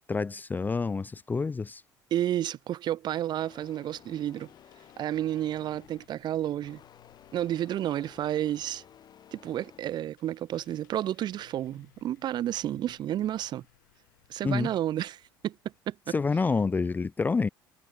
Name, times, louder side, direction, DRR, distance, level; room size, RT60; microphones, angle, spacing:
voice 1, 0.1-1.8 14.4-14.7 16.1-17.5, left 4 dB, 15° left, 0.5 m, -28 dB
voice 2, 2.1-4.5 5.0-6.8 7.3-8.8 9.3-13.6 14.3-15.6 15.9-16.1, right 12 dB, 40° right, 0.7 m, -31 dB
sound 1, 3.4-6.2 6.6-9.8, left 9 dB, 40° left, 3.8 m, -55 dB
sound 2, 4.2-16.3, left 17 dB, 65° left, 2.8 m, -64 dB
figure-of-eight pair, 65°, 11 cm